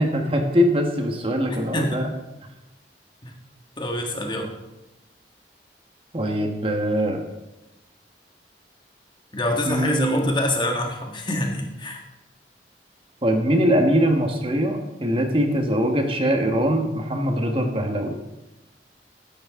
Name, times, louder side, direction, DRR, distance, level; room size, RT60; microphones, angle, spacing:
voice 1, 0.0-2.1 6.1-7.2 9.6-10.3 13.2-18.1, equal, 30° right, 3 dB, 1.5 m, -22 dB
voice 2, 1.5-2.0 3.2-3.3 3.8-4.5 9.3-12.0, left 1 dB, 25° left, 2 dB, 1.7 m, -26 dB
13.5 x 9.7 x 3.8 m, 0.99 s
head